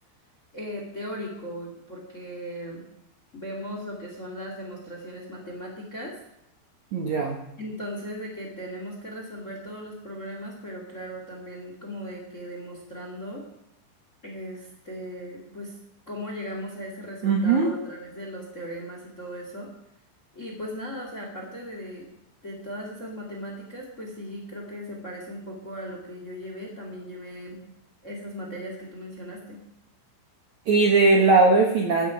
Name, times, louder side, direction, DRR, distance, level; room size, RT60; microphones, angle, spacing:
voice 1, 0.5-2.8 3.3-6.2 7.6-13.4 14.2-15.7 16.1-19.7 20.3-22.1 22.4-27.6 28.0-29.6, equal, 30° left, 1 dB, 1.4 m, -37 dB
voice 2, 6.9-7.4 17.2-17.7 30.7-32.1, right 3 dB, 90° right, 2 dB, 1.6 m, -19 dB
15.5 x 11.0 x 5.3 m, 0.85 s
omnidirectional pair, 5.6 m